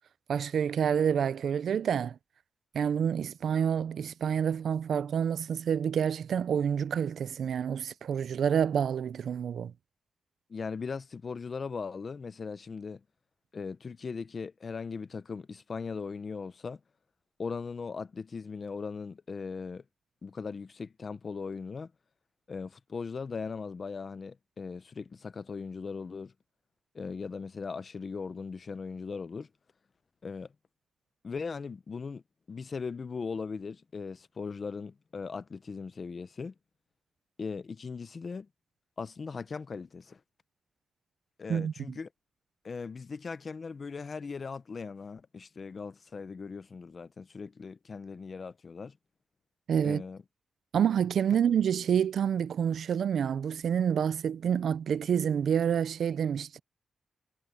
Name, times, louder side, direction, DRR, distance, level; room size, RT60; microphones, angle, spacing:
voice 1, 0.3-2.2 2.7-9.7 41.5-42.0 49.7-50.0 50.7-56.6, right 8 dB, 65° right, 0.5 m, -28 dB
voice 2, 10.5-13.0 13.5-16.8 17.4-19.8 20.2-21.9 22.5-26.3 26.9-29.5 30.2-30.5 31.2-32.2 32.5-36.5 37.4-38.5 39.0-40.2 41.4-42.1 42.6-49.0 49.8-50.2, left 5 dB, 35° left, 0.6 m, -39 dB
wide cardioid pair, 160°, 0 cm